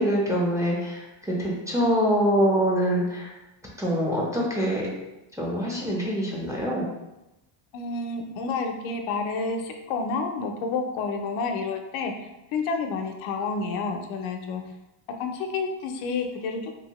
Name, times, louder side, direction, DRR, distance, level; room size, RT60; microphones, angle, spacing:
voice 1, 0.0-3.3 3.8-4.9 5.4-6.9, equal, 5° right, -4 dB, 0.5 m, -24 dB
voice 2, 7.7-12.1 12.5-14.6 15.2-16.7, left 4 dB, 90° left, 4 dB, 0.6 m, -29 dB
2.7 x 2.7 x 2.9 m, 0.96 s
cardioid pair, 135°, 48 cm